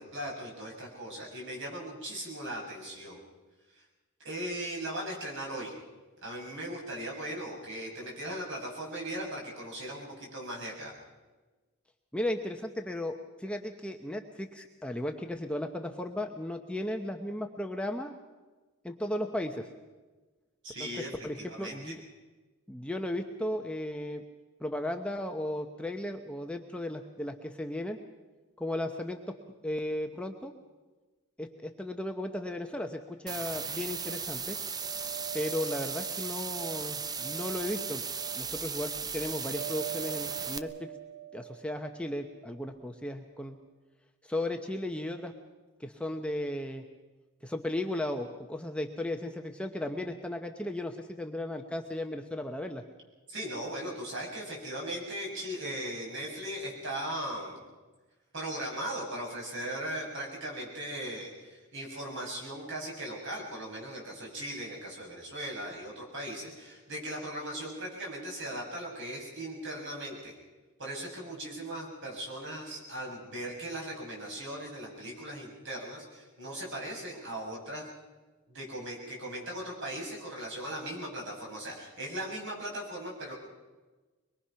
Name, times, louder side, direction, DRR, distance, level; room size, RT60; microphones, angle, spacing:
voice 1, 0.0-3.2 3.7-3.8 4.2-5.7 6.2-10.9 20.6-21.1 21.4-22.0 53.3-57.6 58.3-70.3 70.8-77.9 78.5-83.3, right 1 dB, 55° right, -1 dB, 6.8 m, -38 dB
voice 2, 12.1-18.1 18.8-19.7 20.8-22.0 22.7-24.2 24.6-28.0 28.6-29.4 29.6-30.5 31.4-34.6 35.3-38.0 38.3-40.9 41.3-43.6 44.2-45.3 45.8-46.8 47.4-52.8, left 1 dB, 5° left, 4 dB, 0.9 m, -35 dB
sound 1, 33.3-40.6, right 5 dB, 15° right, 0.6 m, -36 dB
sound 2, 33.7-42.9, right 13 dB, 80° right, 2.1 m, -45 dB
24.0 x 22.0 x 5.8 m, 1.2 s
head